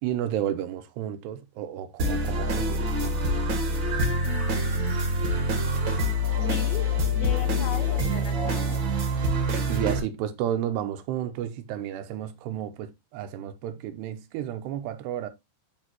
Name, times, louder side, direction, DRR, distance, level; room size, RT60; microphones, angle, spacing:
voice 1, 0.0-3.2 9.7-15.3, right 10 dB, 85° right, 2.9 m, -32 dB
sound 1, 2.0-10.0, equal, 50° right, 1.4 m, -25 dB
voice 2, 4.2-5.9 6.4-6.9 7.1-8.8, left 11 dB, 80° left, 2.2 m, -39 dB
10.5 x 4.3 x 3.0 m
omnidirectional pair, 4.8 m